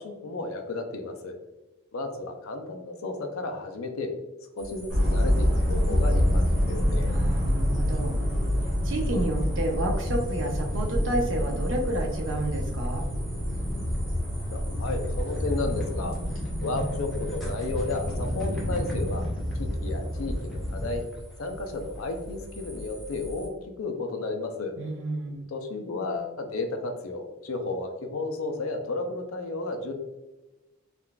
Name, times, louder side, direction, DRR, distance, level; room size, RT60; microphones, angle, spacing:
voice 1, 0.0-1.3 1.9-4.1 4.6-7.2 14.5-16.2 16.6-19.3 19.6-21.0 21.4-24.7 25.5-29.9, left 3 dB, 80° left, 5 dB, 0.5 m, -33 dB
sound 1, 4.6-23.5, equal, ahead, 0.6 m, -44 dB
sound 2, 4.9-21.0, equal, 85° right, 1.4 m, -27 dB
voice 2, 7.0-8.2 8.6-13.1 24.8-25.5, right 1 dB, 60° right, 1 dB, 0.7 m, -30 dB
3.6 x 2.4 x 2.2 m, 1.1 s
head